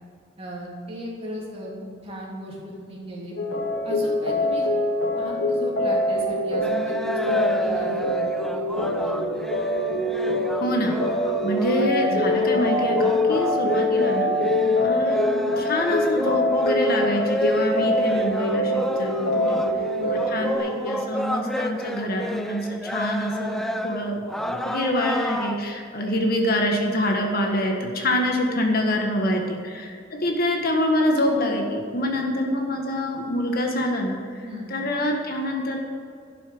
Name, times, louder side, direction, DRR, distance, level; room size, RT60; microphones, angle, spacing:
voice 1, 0.4-3.3 3.8-4.7 5.1-9.4 14.5-14.8 19.3-19.7 20.0-20.2 23.5-23.7 28.8-29.5 34.4-34.7, equal, 30° right, -4 dB, 3.0 m, -36 dB
sound 1, 3.4-20.6, left 1 dB, 75° left, 2.0 m, -24 dB
sound 2, 6.6-25.6, equal, ahead, 0.5 m, -31 dB
voice 2, 10.6-11.0 11.4-14.4 14.8-19.7 20.1-35.8, left 1 dB, 50° left, 2 dB, 1.6 m, -26 dB
12.0 x 6.9 x 8.8 m, 2.3 s
head